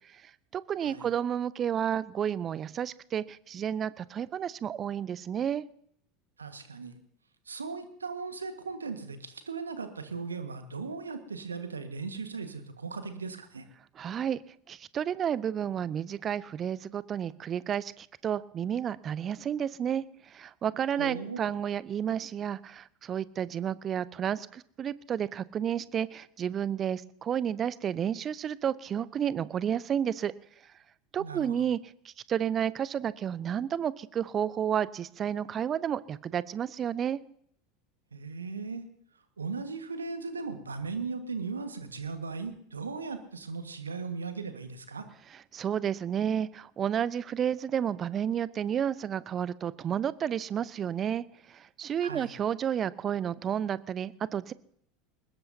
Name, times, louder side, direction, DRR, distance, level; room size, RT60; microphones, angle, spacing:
voice 1, 0.5-5.6 14.0-14.4 14.7-30.3 31.1-31.8 32.0-37.2 45.5-54.5, right 9 dB, 30° right, 19 dB, 0.7 m, -31 dB
voice 2, 6.4-7.0 7.4-13.6 21.0-21.4 31.2-31.7 38.1-38.8 39.4-45.1 52.0-52.3, right 4 dB, 80° right, 9 dB, 1.6 m, -37 dB
22.5 x 20.0 x 2.8 m, 0.67 s
figure-of-eight pair, 75°, 0 cm